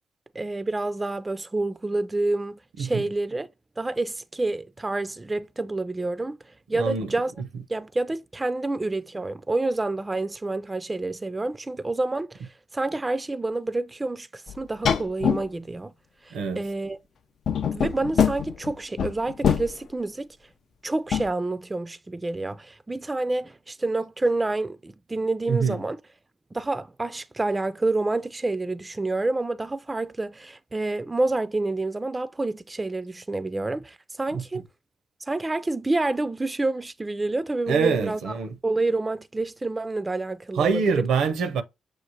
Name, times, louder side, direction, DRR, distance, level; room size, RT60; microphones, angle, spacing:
voice 1, 0.3-3.5 3.8-6.4 6.7-7.3 7.7-15.9 16.2-17.0 17.7-20.3 20.8-26.0 26.5-34.6 35.2-38.3 38.6-40.8, right 2 dB, 20° right, 0.3 m, -28 dB
voice 2, 6.7-7.1 16.3-16.6 25.5-25.8 34.3-34.4 37.7-38.6 40.5-41.6, right 5 dB, 80° right, 0.6 m, -25 dB
sound 1, 14.5-14.6 14.9-15.5 17.5-19.7 21.1-21.3, left 7 dB, 65° left, 0.4 m, -23 dB
6.3 x 2.4 x 2.8 m
supercardioid pair, 55°, 0 cm